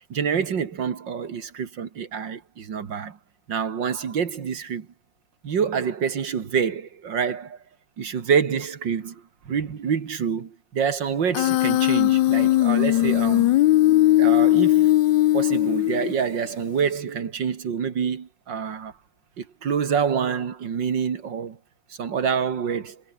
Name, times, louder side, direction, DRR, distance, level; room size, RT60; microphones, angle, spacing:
voice 1, 0.1-3.2 3.5-4.9 5.4-7.6 8.0-13.6 14.2-14.9 15.3-18.9 19.4-21.6 21.9-23.0, right 7 dB, 70° right, 2.6 m, -27 dB
Human voice, 11.3-16.3, left 15 dB, 80° left, 1.3 m, -19 dB
omnidirectional pair, 2.0 m